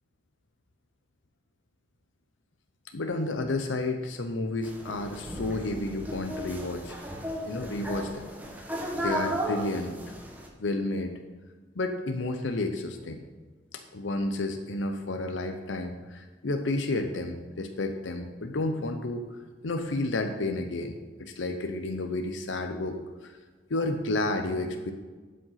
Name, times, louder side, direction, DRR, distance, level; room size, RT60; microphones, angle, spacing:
voice 1, 2.9-7.0 7.5-8.3 9.0-10.1 10.6-11.2 11.8-13.2 13.7-19.3 19.6-23.3 23.7-24.9, left 2 dB, 90° left, 6 dB, 0.7 m, -31 dB
sound 1, 4.6-10.5, equal, 10° right, 1.1 m, -35 dB
11.5 x 5.3 x 5.7 m, 1.4 s
head